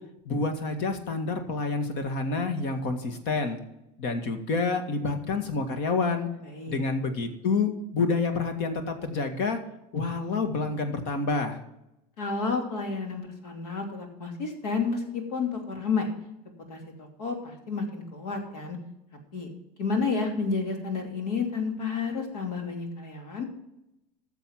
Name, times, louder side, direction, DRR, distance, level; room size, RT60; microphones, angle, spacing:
voice 1, 0.3-3.6 4.0-6.3 6.7-9.6 9.9-11.6, left 3 dB, 60° left, 7 dB, 2.0 m, -28 dB
voice 2, 6.4-6.8 12.2-16.1 16.7-18.8 19.1-19.5 19.8-23.4, left 4 dB, 80° left, 3 dB, 2.9 m, -31 dB
13.0 x 7.1 x 5.9 m, 0.87 s
hypercardioid pair, 95°, 20 cm